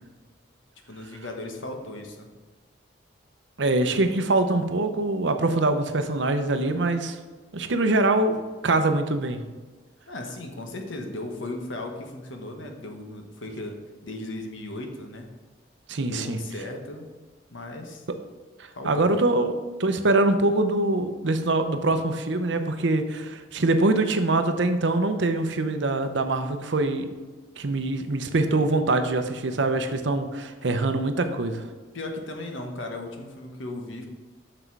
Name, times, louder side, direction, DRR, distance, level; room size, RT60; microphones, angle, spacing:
voice 1, 0.9-2.3 10.1-15.3 16.0-17.1 17.5-18.0 18.7-19.1 31.9-34.1, left 2 dB, 80° left, 3 dB, 1.2 m, -36 dB
voice 2, 3.6-7.2 7.5-9.4 15.9-16.4 18.8-19.5 19.8-27.1 27.6-31.6, right 2 dB, 70° right, 7 dB, 0.7 m, -24 dB
6.6 x 6.0 x 4.6 m, 1.3 s
head